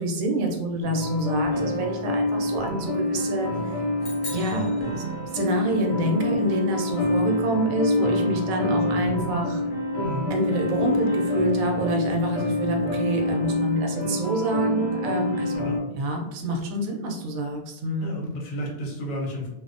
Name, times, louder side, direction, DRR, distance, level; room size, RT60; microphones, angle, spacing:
voice 1, 0.0-3.8 4.3-5.1 5.3-9.6 10.3-15.7 16.0-18.2, right 1 dB, 80° right, 2 dB, 1.0 m, -27 dB
sound 1, 0.8-15.8, left 1 dB, 60° left, 0.8 m, -26 dB
sound 2, 4.0-5.7, left 2 dB, 35° left, 0.8 m, -41 dB
voice 2, 15.5-15.9 18.0-19.5, equal, 75° left, -1 dB, 1.1 m, -32 dB
2.5 x 2.1 x 2.5 m, 0.95 s
omnidirectional pair, 1.5 m